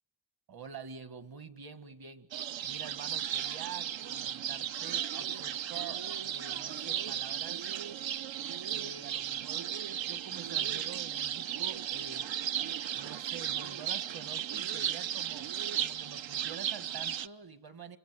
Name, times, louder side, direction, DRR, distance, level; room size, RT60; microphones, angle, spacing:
voice 1, 0.5-2.3 2.6-7.6 8.7-9.7 10.1-12.3 12.9-18.0, right 6 dB, 50° right, 11 dB, 1.9 m, -47 dB
sound 1, 2.3-17.3, right 10 dB, 65° right, 0.9 m, -35 dB
28.0 x 25.5 x 7.7 m, 0.94 s
wide cardioid pair, 120°, 48 cm